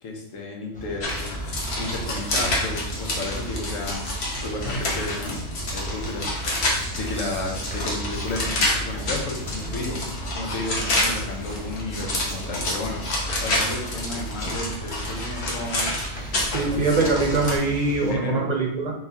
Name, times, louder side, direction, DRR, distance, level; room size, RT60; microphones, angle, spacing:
voice 1, 0.0-1.3 1.8-4.0 4.4-5.4 5.7-6.4 6.9-10.0 10.3-13.0 13.4-15.9 16.7-17.7 18.1-18.5, left 2 dB, 75° left, 0 dB, 1.3 m, -33 dB
sound 1, 0.7-18.2, right 2 dB, 10° left, 0.6 m, -38 dB
sound 2, 1.0-17.6, left 1 dB, 55° left, 1.2 m, -28 dB
voice 2, 16.5-18.9, right 3 dB, 40° right, 0 dB, 0.7 m, -23 dB
4.4 x 3.9 x 2.8 m, 0.82 s
omnidirectional pair, 1.4 m